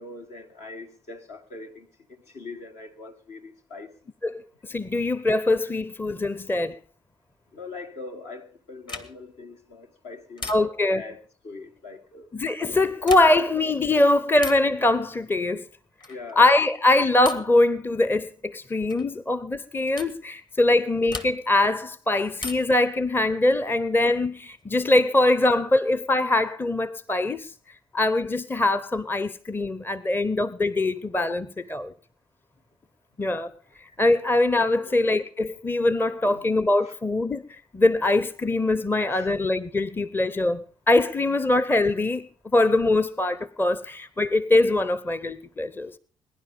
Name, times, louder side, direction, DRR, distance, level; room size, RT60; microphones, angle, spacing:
voice 1, 0.0-3.9 4.9-5.0 6.3-6.4 7.5-12.3 16.1-16.4 31.8-31.9 33.9-34.0 34.8-35.0 36.0-36.5 36.8-36.9 39.1-39.3, left 3 dB, 65° left, 1.9 m, -42 dB
voice 2, 4.2-6.8 10.5-11.0 12.3-15.6 16.4-27.5 27.9-31.9 33.2-33.5 34.0-37.4 37.7-42.3 42.5-45.9, left 2 dB, 15° left, 0.8 m, -22 dB
sound 1, 8.8-9.4 10.4-11.0 12.9-13.6 14.4-14.8 16.0-16.3 17.2-17.6 18.9-19.1 20.0-20.2 21.1-21.6 22.4-22.9 24.3-25.0, left 2 dB, 35° left, 2.1 m, -38 dB
21.5 x 10.5 x 5.3 m
figure-of-eight pair, 45°, 13 cm